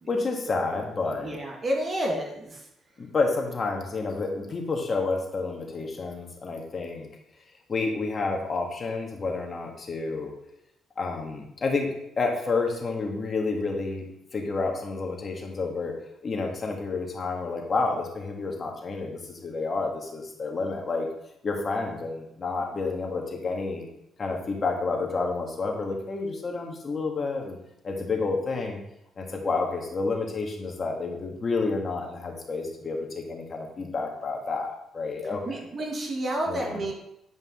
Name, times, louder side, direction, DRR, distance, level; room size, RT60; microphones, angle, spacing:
voice 1, 0.1-1.4 3.0-7.1 7.7-10.3 11.0-14.1 14.3-15.9 16.2-21.1 21.4-23.9 24.2-27.6 27.8-28.8 29.2-35.6 36.5-36.8, left 3 dB, 40° left, 1 dB, 1.8 m, -29 dB
voice 2, 1.2-2.6 35.4-36.9, right 1 dB, 40° right, 0 dB, 1.5 m, -30 dB
9.4 x 5.2 x 3.8 m, 0.79 s
cardioid pair, 90°, 0 cm